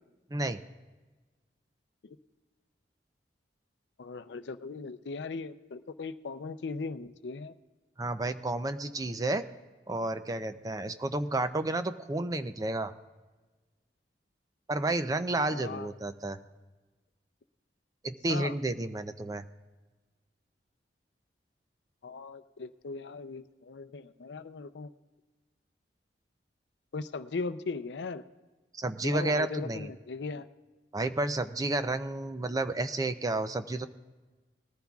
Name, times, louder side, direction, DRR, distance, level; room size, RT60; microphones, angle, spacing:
voice 1, 0.3-0.6 8.0-9.4 9.9-12.9 14.7-16.4 18.0-19.4 28.7-29.9 30.9-33.9, right 2 dB, 20° right, 10 dB, 0.5 m, -31 dB
voice 2, 4.0-7.5 15.5-15.9 18.3-18.5 22.0-24.9 26.9-28.2 29.0-30.5, left 4 dB, 75° left, 12 dB, 0.5 m, -38 dB
20.0 x 14.0 x 2.4 m, 1.2 s
head